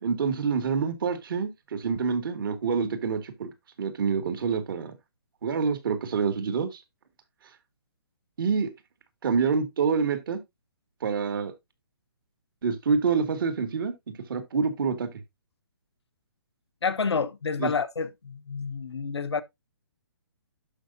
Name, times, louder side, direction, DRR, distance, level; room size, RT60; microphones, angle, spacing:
voice 1, 0.0-3.5 3.8-4.9 5.4-6.8 8.4-8.7 9.2-10.4 11.0-11.5 12.6-13.9 14.3-15.1 17.6-17.7, right 5 dB, 55° right, 2.1 m, -27 dB
voice 2, 16.8-19.4, left 5 dB, 90° left, 1.0 m, -29 dB
11.5 x 5.4 x 2.7 m
hypercardioid pair, 155°, 14 cm